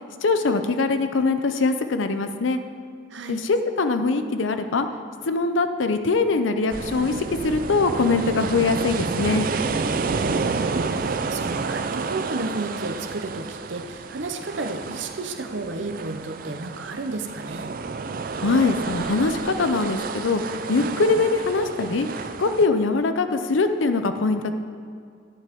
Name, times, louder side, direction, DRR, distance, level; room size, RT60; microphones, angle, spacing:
voice 1, 0.2-2.6 3.3-4.9 5.2-9.5 18.4-24.5, left 3 dB, 85° left, 8 dB, 0.6 m, -22 dB
voice 2, 3.1-3.4 10.1-17.7, right 2 dB, 70° right, 6 dB, 0.7 m, -33 dB
sound 1, 6.7-22.7, right 4 dB, 45° right, 0.4 m, -30 dB
10.5 x 9.2 x 3.6 m, 2.3 s
head